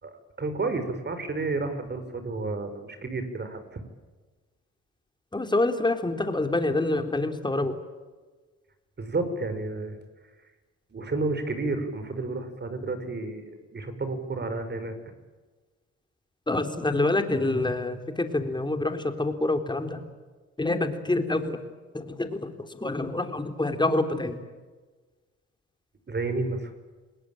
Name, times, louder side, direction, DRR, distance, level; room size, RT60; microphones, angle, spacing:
voice 1, 0.0-3.8 9.0-10.0 10.9-15.0 26.1-26.7, right 3 dB, 35° right, 9 dB, 5.6 m, -31 dB
voice 2, 5.3-7.8 16.5-20.0 20.6-21.6 21.9-24.4, left 2 dB, 15° left, 7 dB, 3.6 m, -27 dB
28.5 x 20.0 x 9.0 m, 1.3 s
cardioid pair, 90°, 30 cm